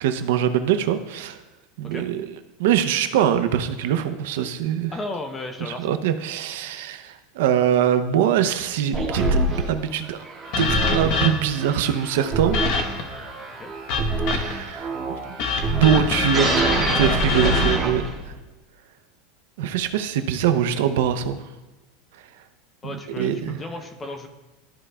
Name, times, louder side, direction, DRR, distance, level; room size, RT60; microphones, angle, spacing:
voice 1, 0.0-1.4 1.8-4.9 5.6-10.2 10.6-12.6 14.3-15.4 15.7-16.5 16.9-18.1 19.6-21.4 22.8-23.6, right 9 dB, 75° right, 9 dB, 0.6 m, -23 dB
voice 2, 4.9-5.9 13.6-13.7 22.8-24.3, left 2 dB, 15° left, 6 dB, 0.6 m, -34 dB
sound 1, 8.9-18.4, right 2 dB, 15° right, 1.9 m, -26 dB
sound 2, 10.5-11.6 12.5-13.2 13.9-14.7 15.4-17.8, left 4 dB, 50° left, 0.9 m, -25 dB
13.0 x 4.7 x 2.2 m, 1.1 s
supercardioid pair, 165°, 0 cm